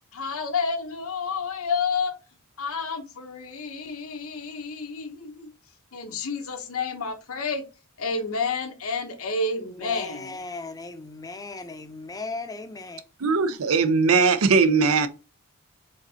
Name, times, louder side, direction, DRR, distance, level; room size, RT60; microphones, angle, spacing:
voice 1, 0.1-2.2 2.6-5.5 5.9-7.6 8.0-10.4, left 4 dB, 75° left, 0.9 m, -30 dB
voice 2, 9.6-13.0, left 3 dB, 15° left, 0.6 m, -37 dB
voice 3, 13.2-15.1, right 4 dB, 75° right, 0.6 m, -20 dB
5.1 x 3.8 x 2.8 m
head